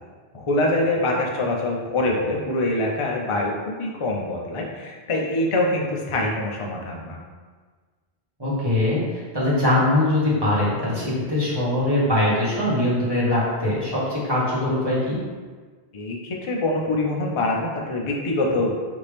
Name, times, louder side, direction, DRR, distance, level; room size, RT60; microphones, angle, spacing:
voice 1, 0.3-7.2 15.9-18.8, left 2 dB, 40° left, -1 dB, 0.5 m, -24 dB
voice 2, 8.4-15.2, left 1 dB, 25° right, -9 dB, 1.4 m, -22 dB
5.3 x 2.8 x 3.3 m, 1.5 s
omnidirectional pair, 1.1 m